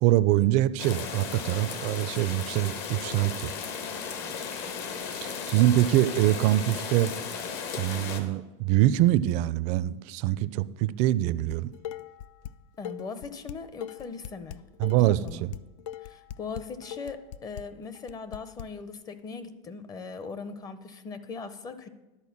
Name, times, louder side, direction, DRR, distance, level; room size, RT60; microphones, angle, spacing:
voice 1, 0.0-3.5 5.1-7.1 7.8-11.7 14.8-15.5, right 14 dB, 45° right, 16 dB, 0.4 m, -24 dB
lluvia acaba pajaros gallo, 0.8-8.2, left 6 dB, 60° left, 1.2 m, -35 dB
Dishes pots and pans, 11.5-12.5 12.8-18.6, left 11 dB, 80° left, 0.4 m, -40 dB
voice 2, 12.8-14.6 15.2-15.4 16.0-21.9, left 4 dB, 25° left, 12 dB, 0.6 m, -39 dB
11.5 x 4.3 x 7.1 m, 1.1 s
supercardioid pair, 145°, 16 cm